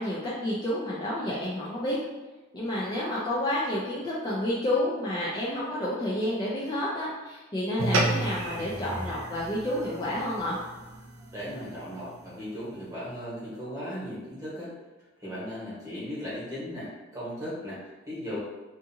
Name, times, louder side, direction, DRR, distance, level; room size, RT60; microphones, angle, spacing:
voice 1, 0.0-2.0 2.5-10.6, left 1 dB, 20° left, -7 dB, 0.3 m, -30 dB
sound 1, 7.8-12.4, right 2 dB, 65° right, 0.5 m, -32 dB
voice 2, 11.3-14.7 15.2-17.8 18.1-18.4, equal, 15° right, -9 dB, 1.1 m, -37 dB
2.5 x 2.5 x 2.6 m, 1.2 s
head